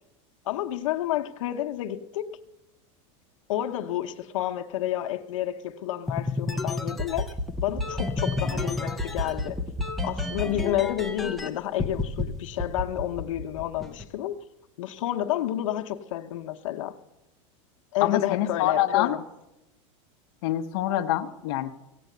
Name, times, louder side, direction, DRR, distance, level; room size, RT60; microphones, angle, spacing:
voice 1, 0.4-2.4 3.5-7.4 7.6-9.6 10.0-14.3 14.8-17.0 17.9-19.2, left 12 dB, 80° left, 0.9 m, -30 dB
sound 1, 6.1-11.5 11.8-12.2 12.6-14.0, left 2 dB, ahead, 0.6 m, -29 dB
voice 2, 18.0-19.2 20.4-21.7, left 13 dB, 50° left, 0.9 m, -25 dB
16.0 x 8.3 x 7.9 m
supercardioid pair, 175°, 16 cm